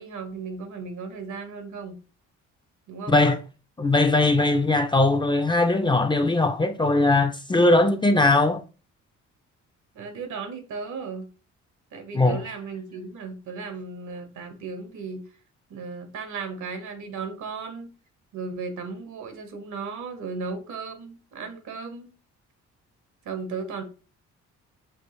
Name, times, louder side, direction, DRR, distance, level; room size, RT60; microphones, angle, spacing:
voice 1, 0.0-2.0 2.9-3.2 9.9-11.3 11.9-15.2 15.7-17.9 18.3-22.1 23.2-23.8, right 4 dB, 75° right, 1.1 m, -35 dB
voice 2, 3.1-3.4 3.8-8.6 12.1-12.4, left 2 dB, 15° left, 0.5 m, -20 dB
6.2 x 2.4 x 3.1 m
cardioid pair, 90°, 30 cm